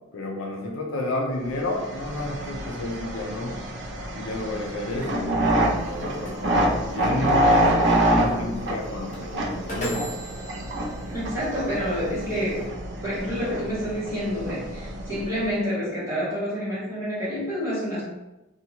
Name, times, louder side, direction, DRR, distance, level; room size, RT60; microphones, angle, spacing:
voice 1, 0.1-3.6 4.1-6.4 6.8-10.1, left 2 dB, 80° left, 1 dB, 0.5 m, -31 dB
sound 1, 1.6-15.5, right 1 dB, 60° right, 0.4 m, -26 dB
sound 2, 5.6-12.6, right 1 dB, 35° left, 0.7 m, -40 dB
voice 2, 11.1-12.6 13.0-18.0, equal, 15° right, -10 dB, 1.2 m, -28 dB
2.7 x 2.3 x 2.8 m, 1.0 s
head